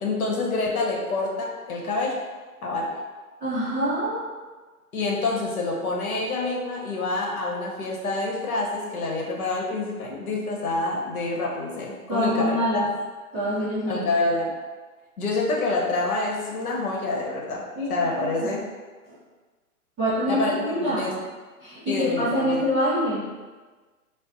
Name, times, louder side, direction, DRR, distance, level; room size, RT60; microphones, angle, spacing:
voice 1, 0.0-2.2 2.6-2.9 4.9-12.8 13.9-14.5 15.2-17.6 17.9-18.6 20.3-21.1 21.9-22.6, left 3 dB, 70° left, -2 dB, 0.9 m, -27 dB
voice 2, 3.4-4.2 12.1-12.9 13.3-14.0 17.7-18.5 19.1-19.2 20.0-21.1 21.6-23.2, equal, 5° right, -22 dB, 0.3 m, -25 dB
2.6 x 2.1 x 3.8 m, 1.4 s
hypercardioid pair, 130°, 45 cm